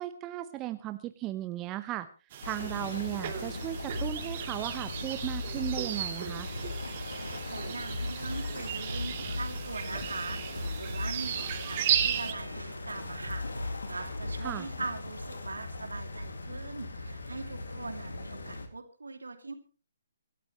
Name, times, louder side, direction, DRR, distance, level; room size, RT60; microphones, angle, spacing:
voice 1, 0.0-2.1 2.4-6.5 14.4-14.7, right 14 dB, 20° right, 11 dB, 0.8 m, -36 dB
sound 1, 2.3-12.3, right 10 dB, 40° right, 2.3 m, -35 dB
sound 2, 2.4-18.7, left 2 dB, 70° left, 2.4 m, -40 dB
sound 3, 3.9-14.5, left 2 dB, 90° right, 4.8 m, -40 dB
voice 2, 7.5-19.5, right 3 dB, 75° right, 7 dB, 2.6 m, -41 dB
25.5 x 12.5 x 3.1 m, 0.35 s
figure-of-eight pair, 130°, 0 cm